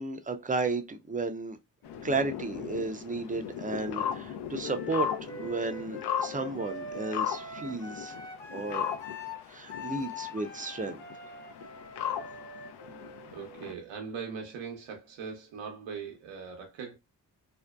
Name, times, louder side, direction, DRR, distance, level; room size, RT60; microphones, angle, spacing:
voice 1, 0.0-1.6 2.0-5.1 5.4-8.1 8.5-8.9 9.5-11.0, right 3 dB, 20° right, 0.4 m, -33 dB
sound 1, 1.8-13.7, left 8 dB, 65° left, 0.5 m, -37 dB
Wind instrument woodwind instrument, 4.6-14.4, left 2 dB, 90° left, 1.2 m, -43 dB
voice 2, 13.3-16.9, right 6 dB, 85° right, 0.7 m, -40 dB
2.6 x 2.1 x 2.2 m
supercardioid pair, 50°, 43 cm